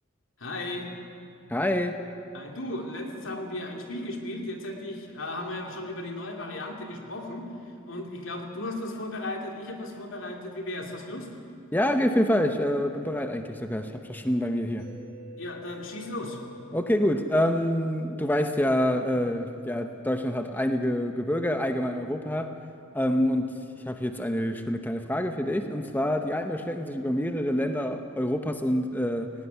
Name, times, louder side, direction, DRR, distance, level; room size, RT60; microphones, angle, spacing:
voice 1, 0.4-0.9 2.3-7.5 7.9-11.3 15.4-16.4, left 1 dB, 75° left, 2 dB, 2.7 m, -35 dB
voice 2, 1.5-2.0 11.7-14.9 16.7-22.6 22.9-23.5 23.9-29.3, equal, 10° left, 6 dB, 0.8 m, -26 dB
Mallet percussion, 14.8-18.6, left 1 dB, 55° right, 4.5 m, -49 dB
17.5 x 17.0 x 9.6 m, 2.6 s
head